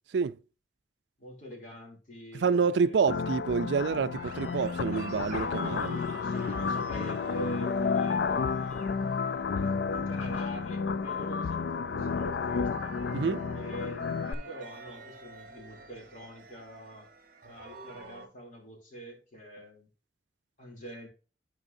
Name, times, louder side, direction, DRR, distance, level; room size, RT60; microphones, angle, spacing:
voice 1, 1.2-3.1 6.0-8.9 9.5-13.0 13.5-17.1 17.4-19.9 20.6-21.1, equal, 45° left, 2.9 m, -45 dB
voice 2, 2.4-6.0 13.1-13.5, right 5 dB, 80° right, 0.4 m, -28 dB
sound 1, 3.1-14.3, left 5 dB, 75° left, 0.4 m, -31 dB
sound 2, 4.1-18.3, right 3 dB, 50° right, 1.0 m, -48 dB
12.5 x 4.7 x 2.6 m
head